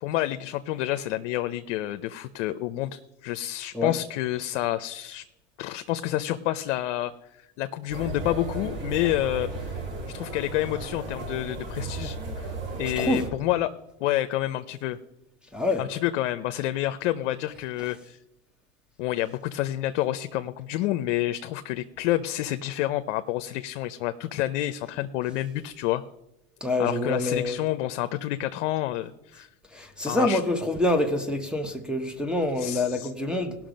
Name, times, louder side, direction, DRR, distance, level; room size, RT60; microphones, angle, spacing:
voice 1, 0.0-5.2 5.6-7.1 7.6-9.8 10.1-12.5 12.8-13.7 14.0-15.0 15.8-18.2 19.0-26.1 26.8-29.5 30.0-30.4 32.6-33.1, left 14 dB, 70° left, 0.7 m, -29 dB
sound 1, 7.9-13.3, right 3 dB, 55° right, 3.9 m, -35 dB
voice 2, 15.5-15.8 26.6-27.6 29.7-33.6, left 2 dB, ahead, 1.0 m, -26 dB
17.5 x 6.0 x 5.2 m
supercardioid pair, 115°, 37 cm